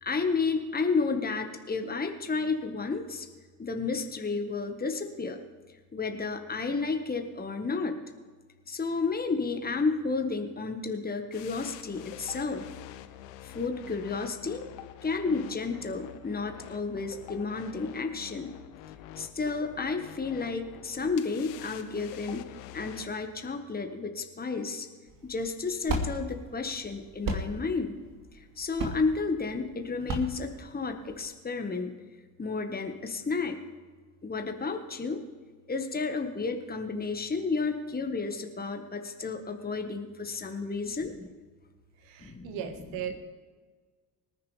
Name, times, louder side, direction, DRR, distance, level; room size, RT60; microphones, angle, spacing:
voice 1, 0.0-3.3 3.6-5.4 5.9-8.0 8.7-12.7 13.4-14.6 15.0-18.5 19.2-22.5 22.7-24.9 25.2-28.0 28.3-32.0 32.4-33.6 34.2-35.2 35.7-41.3 42.2-42.6, left 4 dB, 20° left, 5 dB, 1.6 m, -32 dB
sound 1, 11.3-23.1, left 12 dB, 65° left, 0.9 m, -46 dB
sound 2, 25.1-31.3, right 1 dB, 45° right, 2.4 m, -35 dB
voice 2, 42.0-43.2, right 9 dB, 65° right, 8 dB, 1.8 m, -37 dB
24.5 x 10.5 x 3.5 m, 1.4 s
figure-of-eight pair, 50°, 48 cm